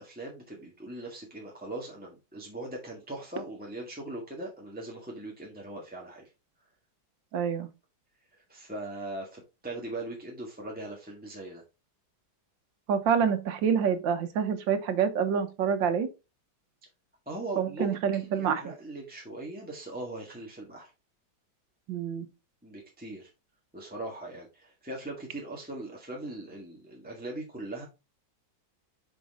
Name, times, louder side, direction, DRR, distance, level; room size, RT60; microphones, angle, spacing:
voice 1, 0.0-6.3 8.5-11.6 17.2-20.9 22.6-23.3 23.7-27.8, right 2 dB, 5° right, 1.6 m, -40 dB
voice 2, 7.3-7.7 12.9-16.1 17.6-18.7 21.9-22.3, right 7 dB, 85° right, 1.7 m, -27 dB
6.0 x 6.0 x 3.6 m
omnidirectional pair, 2.0 m